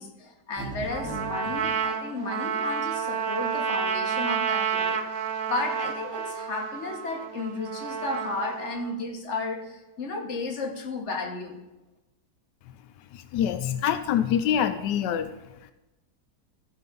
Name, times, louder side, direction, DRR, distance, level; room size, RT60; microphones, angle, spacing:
voice 1, 0.0-5.0 5.5-11.6, left 3 dB, 45° left, 1 dB, 1.7 m, -33 dB
sound 1, 0.6-1.7, right 2 dB, 5° right, 3.2 m, -38 dB
Trumpet, 0.9-9.0, right 7 dB, 60° right, 1.2 m, -30 dB
voice 2, 13.3-15.3, left 9 dB, 85° left, 10 dB, 1.2 m, -25 dB
13.5 x 5.1 x 5.2 m, 1.0 s
omnidirectional pair, 1.8 m